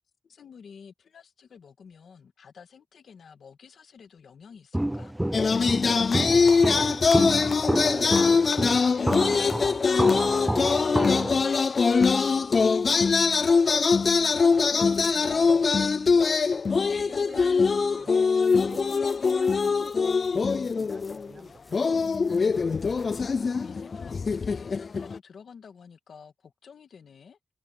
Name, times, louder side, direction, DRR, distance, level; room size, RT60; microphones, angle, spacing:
voice 1, 0.2-5.1 14.7-15.7 23.6-27.4, left 6 dB, 85° left, 1.8 m, -50 dB
Walk footsteps, 4.7-11.4, right 1 dB, 15° right, 0.4 m, -29 dB
sound 1, 5.3-21.4 21.7-25.2, left 5 dB, 65° left, 0.3 m, -23 dB
voice 2, 5.8-13.9 14.5-22.6, right 3 dB, 50° right, 5.7 m, -48 dB
sound 2, 18.4-23.7, left 2 dB, 30° left, 3.3 m, -57 dB
cardioid pair, 40°, 0 cm